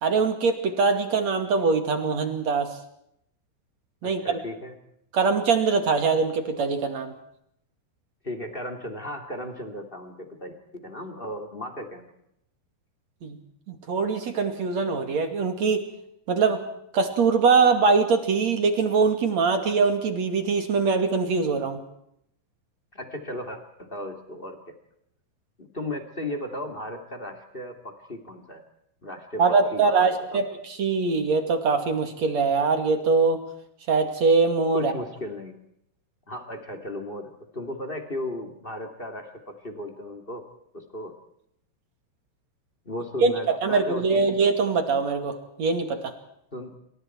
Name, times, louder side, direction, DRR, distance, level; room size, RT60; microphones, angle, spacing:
voice 1, 0.0-2.7 4.0-4.4 5.1-7.1 13.2-13.4 13.7-15.8 16.3-16.6 16.9-21.8 29.4-30.5 30.8-33.4 33.9-34.9 43.2-46.1, right 4 dB, 45° right, 6 dB, 2.7 m, -22 dB
voice 2, 4.0-4.7 8.2-12.1 22.9-24.7 25.6-28.6 29.0-30.4 34.7-35.5 36.3-40.4 40.7-41.1 42.8-44.3 46.5-46.8, left 1 dB, 20° left, 6 dB, 1.3 m, -36 dB
28.0 x 25.5 x 4.6 m, 0.76 s
omnidirectional pair, 5.7 m